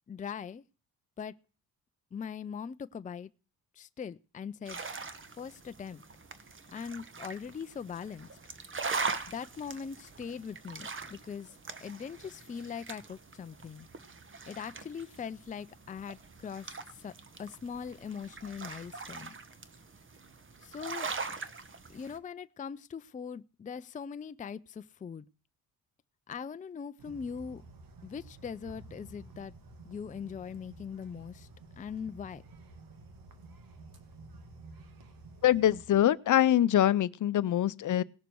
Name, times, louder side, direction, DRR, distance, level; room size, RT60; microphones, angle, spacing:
voice 1, 0.1-0.6 1.2-1.3 2.1-3.3 3.8-4.8 5.4-6.0 6.7-8.3 9.3-11.5 11.8-13.9 14.5-17.1 17.4-19.3 20.6-21.1 21.9-25.3 26.3-27.6 28.0-29.5 29.8-31.5 31.8-32.4, left 6 dB, 20° left, 0.5 m, -41 dB
sound 1, 4.7-22.2, right 4 dB, 35° right, 1.5 m, -42 dB
sound 2, 27.0-36.0, right 2 dB, 70° right, 2.3 m, -52 dB
voice 2, 35.4-38.0, left 12 dB, 55° left, 0.7 m, -24 dB
19.0 x 6.7 x 4.7 m
cardioid pair, 75°, 36 cm